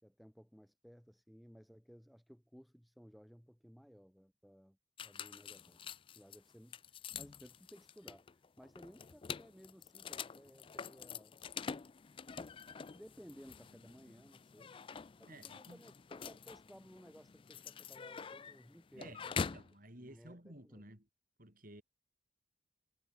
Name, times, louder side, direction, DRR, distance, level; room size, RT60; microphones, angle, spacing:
voice 1, 0.0-6.8 7.2-11.4 12.9-14.7 15.2-19.5 19.9-20.9, equal, ahead, 6.6 m, -58 dB
sound 1, 5.0-19.7, left 6 dB, 30° left, 0.4 m, -46 dB
voice 2, 15.3-15.8 19.0-21.1 21.4-21.8, right 1 dB, 50° right, 6.1 m, -54 dB
head